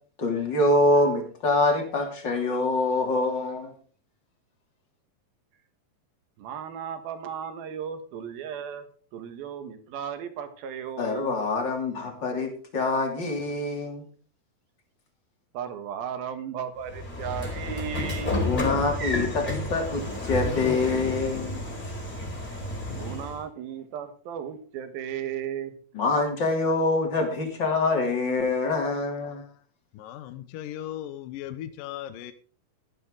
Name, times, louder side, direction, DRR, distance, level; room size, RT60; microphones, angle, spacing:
voice 1, 0.2-3.7 11.0-14.0 18.4-21.6 25.9-29.4, left 2 dB, 30° left, 3 dB, 3.2 m, -25 dB
voice 2, 6.4-8.9 9.1-11.5 15.5-18.4 22.9-25.7, right 8 dB, 85° right, 9 dB, 3.3 m, -35 dB
Train / Sliding door, 16.9-23.4, left 2 dB, 10° left, 4.4 m, -31 dB
voice 3, 30.0-32.3, left 12 dB, 75° left, 11 dB, 2.4 m, -37 dB
13.5 x 12.0 x 3.8 m, 0.41 s
omnidirectional pair, 4.2 m